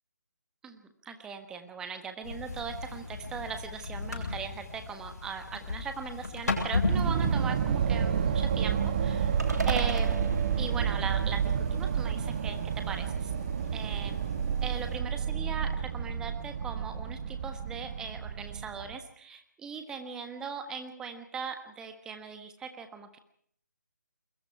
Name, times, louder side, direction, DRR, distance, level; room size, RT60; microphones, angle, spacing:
voice 1, 0.6-10.2 10.6-13.3 13.7-14.2 14.6-23.2, right 6 dB, 5° right, 7 dB, 1.3 m, -39 dB
sound 1, 2.2-15.0, left 3 dB, 60° left, 7.8 m, -38 dB
sound 2, 6.9-19.0, right 7 dB, 30° right, 1.5 m, -30 dB
sound 3, 9.4-11.7, right 2 dB, 65° right, 3.2 m, -37 dB
28.0 x 22.0 x 4.7 m, 0.64 s
figure-of-eight pair, 150°, 10 cm